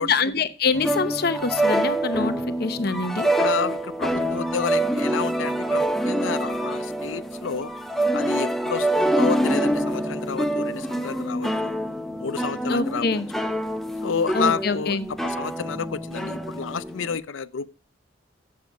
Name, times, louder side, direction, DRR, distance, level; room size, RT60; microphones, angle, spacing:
voice 1, 0.0-2.3 2.6-3.3 12.7-13.2 14.3-15.1, left 4 dB, 55° left, 0.8 m, -25 dB
sound 1, 0.7-17.2, right 1 dB, ahead, 0.5 m, -26 dB
voice 2, 3.2-7.7 8.1-11.8 12.2-13.2 14.0-17.7, left 6 dB, 85° left, 0.5 m, -30 dB
7.6 x 7.3 x 5.7 m
head